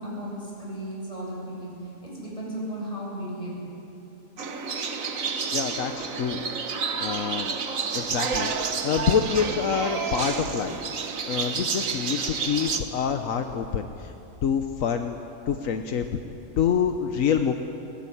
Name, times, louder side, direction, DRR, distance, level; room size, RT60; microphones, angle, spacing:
voice 1, 0.0-3.6 6.6-6.7, right 1 dB, 25° left, -4 dB, 7.7 m, -35 dB
sound 1, 4.4-12.8, right 5 dB, 80° right, 1.7 m, -30 dB
voice 2, 5.5-6.4 7.0-7.5 7.9-8.5 8.8-10.7 11.3-14.1 14.4-15.2 15.5-16.1 16.6-17.5, left 7 dB, 80° left, 7 dB, 1.3 m, -26 dB
21.0 x 18.5 x 10.0 m, 3.0 s
omnidirectional pair, 1.4 m